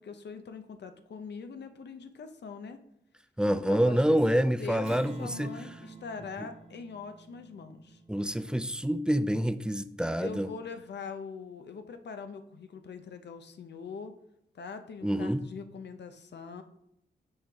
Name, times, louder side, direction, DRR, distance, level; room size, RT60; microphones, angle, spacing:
voice 1, 0.0-2.8 3.5-8.0 10.2-14.1 14.5-16.6, left 5 dB, 65° left, 8 dB, 0.7 m, -42 dB
voice 2, 3.4-5.5 8.1-10.5 15.0-15.4, equal, 5° right, 12 dB, 0.4 m, -27 dB
Strum, 4.8-9.7, right 3 dB, 30° right, 0.9 m, -49 dB
6.3 x 4.9 x 3.5 m, 0.80 s
cardioid pair, 80°, 19 cm